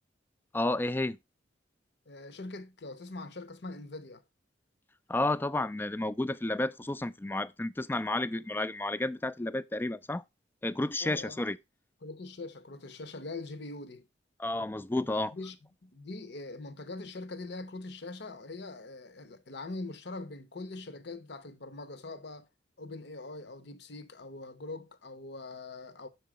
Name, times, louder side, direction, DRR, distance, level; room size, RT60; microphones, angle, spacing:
voice 1, 0.5-1.2 5.1-10.2 10.6-11.6 14.4-15.3, left 2 dB, 10° left, 0.3 m, -31 dB
voice 2, 2.1-4.2 11.0-11.5 12.0-14.0 15.3-15.6 15.8-22.5 22.8-26.1, left 2 dB, 65° left, 0.9 m, -42 dB
6.7 x 4.6 x 4.9 m
head